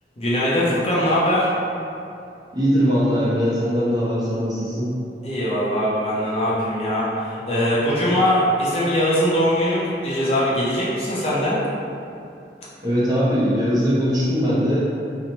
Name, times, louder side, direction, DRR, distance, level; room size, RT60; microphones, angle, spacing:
voice 1, 0.2-1.5 5.2-11.6, equal, 35° left, -8 dB, 0.4 m, -21 dB
voice 2, 2.5-4.9 12.8-14.8, equal, 20° right, -9 dB, 0.5 m, -20 dB
2.8 x 2.0 x 2.8 m, 2.6 s
head